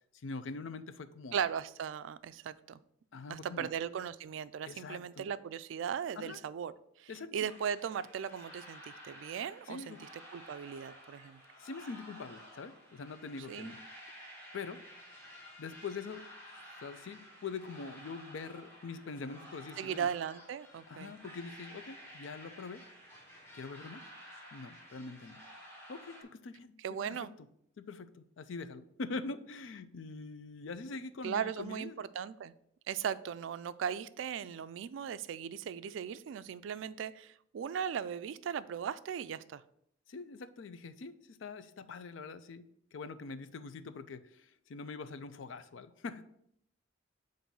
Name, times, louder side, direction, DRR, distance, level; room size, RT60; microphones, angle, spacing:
voice 1, 0.1-1.4 3.1-3.7 4.6-5.3 6.1-6.4 7.1-7.3 9.7-10.0 11.6-13.8 14.5-14.8 15.6-16.2 16.7-20.1 20.9-22.8 23.5-24.0 24.5-25.4 25.9-27.3 27.8-32.0 40.1-46.2, left 4 dB, 70° left, 12 dB, 0.4 m, -44 dB
voice 2, 1.3-2.8 3.3-6.7 7.0-11.4 13.5-13.7 19.8-21.1 26.8-27.3 31.2-32.5 32.9-39.6, right 8 dB, 70° right, 15 dB, 0.3 m, -38 dB
sound 1, 7.4-26.2, equal, 10° left, 1.5 m, -53 dB
7.3 x 2.6 x 5.3 m, 0.70 s
head